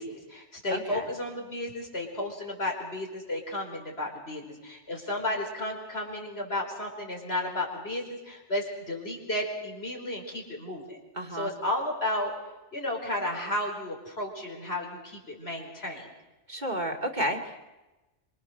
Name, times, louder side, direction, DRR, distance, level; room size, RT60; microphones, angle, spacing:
voice 1, 0.0-11.0 11.3-12.3 12.7-16.1, left 1 dB, 60° left, 1 dB, 5.1 m, -33 dB
voice 2, 0.7-1.1 11.2-11.5 16.5-17.7, equal, 40° right, 2 dB, 2.7 m, -32 dB
26.5 x 26.0 x 6.6 m, 1.1 s
omnidirectional pair, 1.2 m